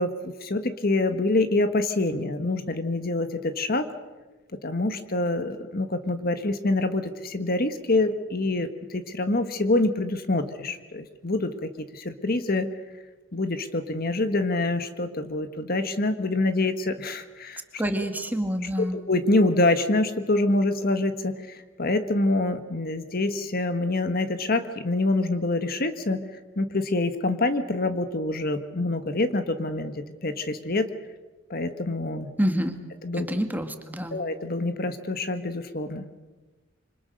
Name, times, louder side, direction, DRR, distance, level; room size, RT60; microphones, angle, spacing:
voice 1, 0.0-3.9 4.6-12.7 13.3-17.8 18.8-26.2 26.6-30.9 31.5-32.3 33.0-33.3 34.1-36.0, left 2 dB, 50° left, 9 dB, 1.5 m, -26 dB
voice 2, 17.8-19.0 32.4-32.8 33.2-34.2, equal, 10° right, 6 dB, 2.0 m, -27 dB
27.0 x 25.5 x 6.5 m, 1.2 s
head